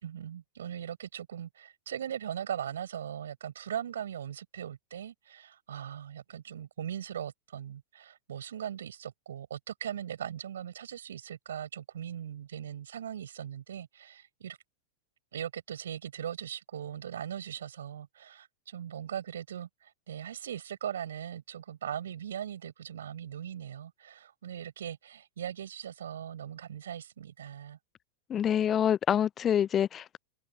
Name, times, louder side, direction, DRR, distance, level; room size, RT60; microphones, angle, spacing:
voice 1, 0.0-14.6 15.3-27.8, right 9 dB, 65° right, 5.6 m, -39 dB
voice 2, 28.3-30.2, left 9 dB, 25° left, 0.6 m, -26 dB
open air
figure-of-eight pair, 90°, 0 cm